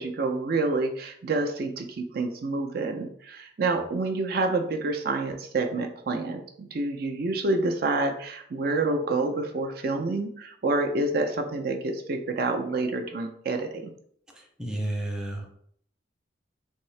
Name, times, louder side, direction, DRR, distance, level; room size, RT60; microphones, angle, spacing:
voice 1, 0.0-13.9, right 3 dB, 55° right, 4 dB, 0.4 m, -28 dB
voice 2, 14.6-15.5, right 1 dB, 5° right, 1 dB, 0.6 m, -31 dB
3.5 x 2.7 x 3.2 m, 0.63 s
head